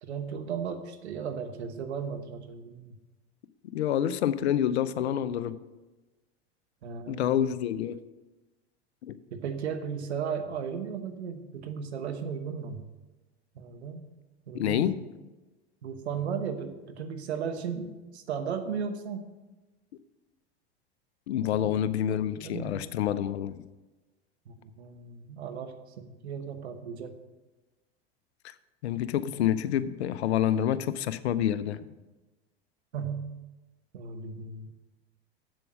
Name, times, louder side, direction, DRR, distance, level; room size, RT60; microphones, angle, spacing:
voice 1, 0.0-2.9 6.8-7.5 9.3-12.8 13.5-14.0 14.5-14.9 15.8-19.3 21.4-21.7 22.1-22.8 24.5-27.1 32.9-33.3 33.9-34.7, right 6 dB, 80° right, 8 dB, 1.1 m, -36 dB
voice 2, 3.7-5.6 7.1-8.0 9.0-9.2 14.5-14.9 21.3-23.6 28.4-28.5 28.8-31.8, left 10 dB, 80° left, 15 dB, 0.6 m, -28 dB
7.7 x 7.3 x 6.0 m, 1.1 s
hypercardioid pair, 90°, 32 cm